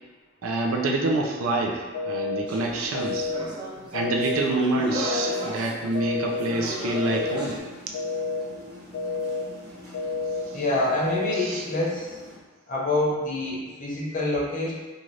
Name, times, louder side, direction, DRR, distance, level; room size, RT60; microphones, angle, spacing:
voice 1, 0.4-3.3 3.9-7.6 11.3-11.6, right 2 dB, 80° right, 1 dB, 0.4 m, -27 dB
sound 1, 1.9-2.4 2.9-3.4 3.9-4.4 4.9-5.4 5.9-6.4 6.9-7.4 7.9-8.4 8.9-9.4 9.9-10.4 10.9-11.4, left 3 dB, 80° left, 0.3 m, -29 dB
sound 2, 2.5-7.6, equal, 25° right, 0.5 m, -36 dB
sound 3, 6.5-12.4, left 2 dB, 55° right, 0.9 m, -45 dB
voice 2, 10.5-12.1 12.7-14.7, left 2 dB, 40° left, -5 dB, 0.7 m, -26 dB
2.6 x 2.4 x 3.1 m, 1.3 s
head